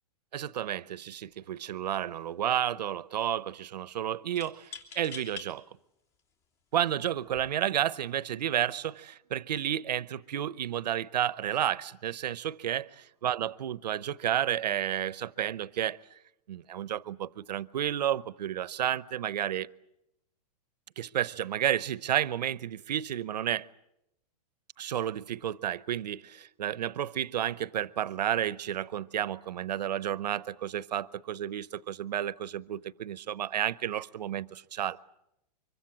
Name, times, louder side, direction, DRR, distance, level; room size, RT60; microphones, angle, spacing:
voice 1, 0.3-5.6 6.7-12.8 13.2-16.0 16.5-19.7 21.0-23.7 24.8-35.0, right 10 dB, 85° right, 0.8 m, -31 dB
sound 1, 1.2-1.5 1.8-2.4 4.4-5.5 6.2-6.3 7.2-7.5, left 6 dB, 35° left, 3.2 m, -46 dB
25.0 x 23.5 x 7.4 m
hypercardioid pair, 155°, 21 cm